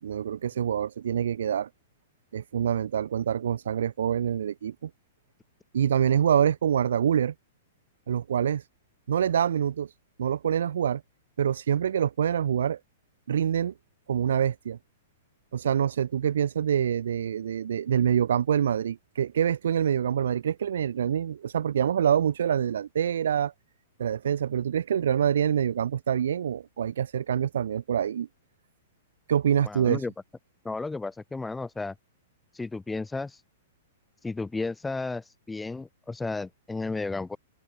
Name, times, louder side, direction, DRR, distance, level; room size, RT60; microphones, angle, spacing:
voice 1, 0.0-1.7 2.3-4.9 5.7-7.3 8.1-8.7 9.1-11.0 11.4-12.8 13.3-13.7 14.1-14.8 15.5-23.5 24.0-28.3 29.3-30.1, right 9 dB, 80° right, 4.2 m, -26 dB
voice 2, 29.6-30.1 30.6-31.9 32.5-33.4 34.2-37.4, left 3 dB, 10° left, 6.4 m, -33 dB
open air
hypercardioid pair, 135°, 0 cm